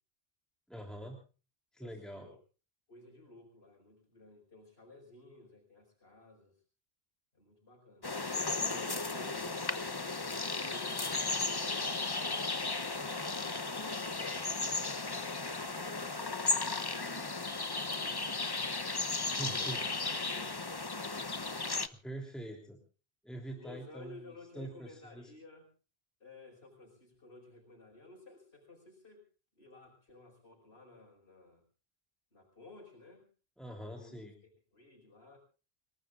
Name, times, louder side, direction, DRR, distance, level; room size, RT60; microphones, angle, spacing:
voice 1, 0.7-1.2 1.7-2.3 19.2-19.8 22.0-22.8 23.2-24.2 24.5-25.3 33.6-34.3, right 1 dB, ahead, 2 dB, 3.3 m, -44 dB
voice 2, 1.8-2.4 2.9-6.6 7.3-8.1 8.6-9.4 10.4-11.9 12.4-17.1 18.0-18.3 19.5-21.2 23.5-25.7 26.2-29.2 29.5-31.6 32.3-33.3 33.8-35.4, left 2 dB, 80° left, -2 dB, 6.1 m, -55 dB
sound 1, 8.0-21.9, left 3 dB, 25° left, 0.8 m, -35 dB
29.5 x 19.0 x 2.5 m, 0.36 s
omnidirectional pair, 1.0 m